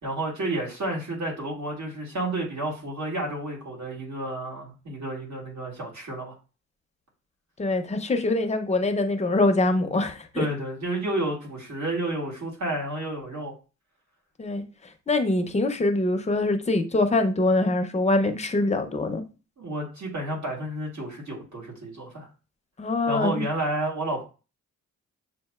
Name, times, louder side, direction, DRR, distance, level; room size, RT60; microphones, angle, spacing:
voice 1, 0.0-6.3 10.3-13.5 19.6-22.3 23.1-24.2, right 1 dB, 60° right, 2.1 m, -31 dB
voice 2, 7.6-10.5 14.4-14.6 15.1-19.2 22.8-23.4, left 2 dB, 20° left, 0.6 m, -24 dB
7.2 x 2.6 x 2.4 m
cardioid pair, 90°, 32 cm